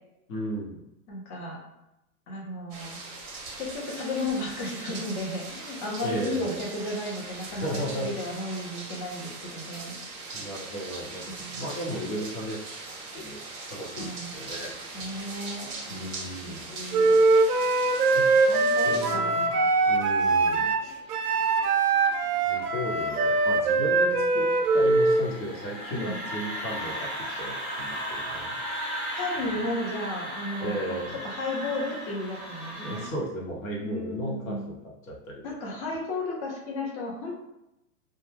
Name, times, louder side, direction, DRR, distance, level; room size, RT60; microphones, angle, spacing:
voice 1, 0.3-0.8 6.0-6.6 7.5-8.1 10.3-12.8 13.1-13.4 13.7-14.7 15.9-16.6 18.1-18.3 18.8-19.5 19.8-20.7 22.4-24.4 24.7-28.6 29.5-29.6 30.6-31.2 32.8-35.8, equal, 65° left, -2 dB, 1.0 m, -35 dB
voice 2, 1.1-1.6 2.3-3.0 3.6-7.7 7.9-9.9 11.3-11.9 14.0-14.3 14.9-16.1 16.5-17.2 18.5-19.7 25.9-26.2 29.1-33.1 33.8-34.7 35.4-37.4, left 2 dB, 30° left, -2 dB, 0.7 m, -34 dB
sound 1, 2.7-19.1, right 3 dB, 25° right, 0.6 m, -40 dB
sound 2, 14.2-33.1, equal, 10° left, 1.1 m, -38 dB
Wind instrument woodwind instrument, 16.9-25.3, right 3 dB, 90° right, 0.6 m, -22 dB
2.2 x 2.1 x 3.2 m, 0.88 s
hypercardioid pair, 130°, 45 cm